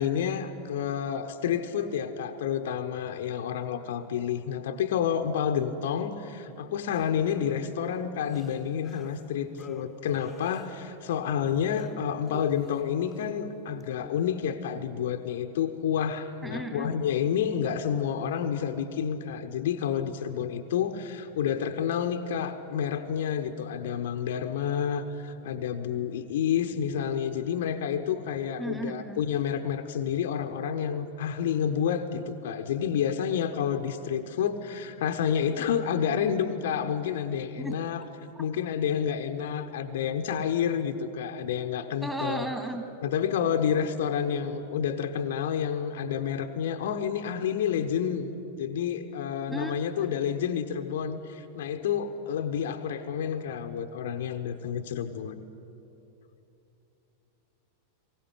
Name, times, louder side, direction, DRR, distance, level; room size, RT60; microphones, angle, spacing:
voice 1, 0.0-38.1 38.4-42.5 43.0-48.3 48.6-55.4, left 8 dB, 55° left, 7 dB, 1.1 m, -29 dB
sound 1, 6.9-11.1 11.4-13.3 13.8-14.2, left 5 dB, 15° left, 1.3 m, -48 dB
voice 2, 16.4-16.9 28.6-29.2 37.6-37.7 42.0-42.8 49.5-50.1, right 2 dB, 5° right, 4 dB, 2.7 m, -35 dB
23.0 x 16.5 x 9.9 m, 2.9 s
figure-of-eight pair, 90°, 0 cm